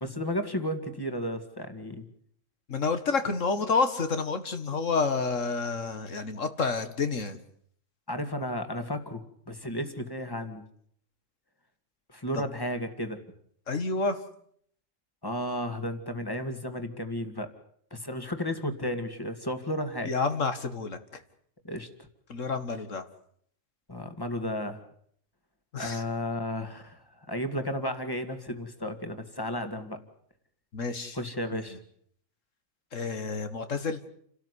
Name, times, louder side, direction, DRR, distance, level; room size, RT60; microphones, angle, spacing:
voice 1, 0.0-2.1 8.1-10.7 12.1-13.2 15.2-17.5 17.9-20.2 21.6-22.1 23.9-24.9 25.8-30.0 31.1-31.8, left 1 dB, 15° left, 8 dB, 2.2 m, -33 dB
voice 2, 2.7-7.4 12.3-12.4 13.7-14.2 20.0-21.2 22.3-23.0 25.7-26.0 30.7-31.2 32.9-34.0, left 4 dB, 75° left, 9 dB, 2.2 m, -29 dB
29.0 x 13.0 x 9.8 m, 0.65 s
omnidirectional pair, 1.3 m